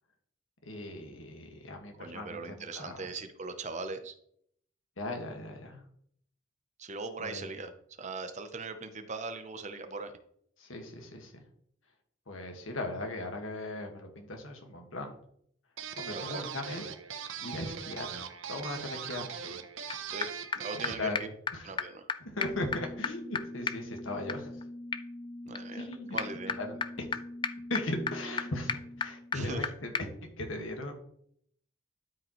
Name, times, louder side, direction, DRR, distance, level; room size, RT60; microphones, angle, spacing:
voice 1, 0.6-3.1 5.0-5.8 7.2-7.5 10.6-11.4 12.3-15.2 16.0-16.9 17.4-18.2 18.5-19.3 20.7-21.7 22.2-24.5 25.7-26.2 26.6-27.1 27.7-31.0, left 1 dB, 75° left, 3 dB, 1.6 m, -38 dB
voice 2, 2.0-4.1 6.8-7.7 8.0-10.1 16.1-16.5 20.1-20.3 20.5-21.3 21.6-22.0 25.5-26.6 29.3-29.7, right 3 dB, 35° right, 9 dB, 0.6 m, -40 dB
sound 1, 15.8-21.1, right 7 dB, 70° right, 0.7 m, -40 dB
sound 2, 19.9-20.0 20.2-20.3 20.5-20.6 20.8-20.9 21.1-21.2 21.5-21.6 21.8-21.9 22.1-22.2 22.4-29.7 29.9-30.0, left 5 dB, 25° left, 0.3 m, -36 dB
12.0 x 5.1 x 3.0 m, 0.68 s
head